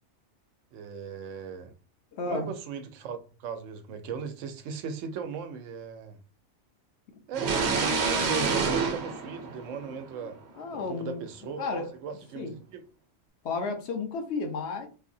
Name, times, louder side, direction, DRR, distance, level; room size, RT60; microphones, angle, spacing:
voice 1, 0.7-1.7 2.2-6.2 7.3-10.4 10.7-12.8, right 6 dB, 90° right, 1.0 m, -38 dB
voice 2, 2.1-2.5 10.6-11.2 11.6-11.9 12.4-12.5 13.4-14.9, left 4 dB, 65° left, 1.0 m, -32 dB
sound 1, 7.3-10.2, right 4 dB, 65° right, 0.9 m, -27 dB
3.9 x 2.7 x 2.6 m
omnidirectional pair, 1.3 m